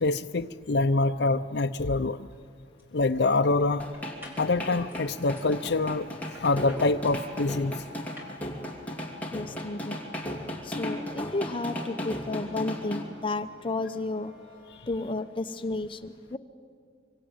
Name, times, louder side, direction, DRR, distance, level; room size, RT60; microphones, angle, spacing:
voice 1, 0.0-2.2 2.9-3.8 4.4-6.1 6.4-7.7, left 3 dB, 65° left, 5 dB, 0.6 m, -25 dB
sound 1, 2.3-2.4 2.8-3.4 3.9-4.5 4.9-5.5 6.2-8.4, left 1 dB, 10° right, 4.4 m, -50 dB
sound 2, 3.8-13.0, equal, 10° left, 2.6 m, -36 dB
sound 3, 5.2-15.2, left 1 dB, 75° right, 6.5 m, -56 dB
voice 2, 9.3-10.0 10.6-14.3 14.9-16.4, left 2 dB, 30° left, 9 dB, 0.8 m, -32 dB
25.5 x 24.0 x 8.9 m, 2.1 s
head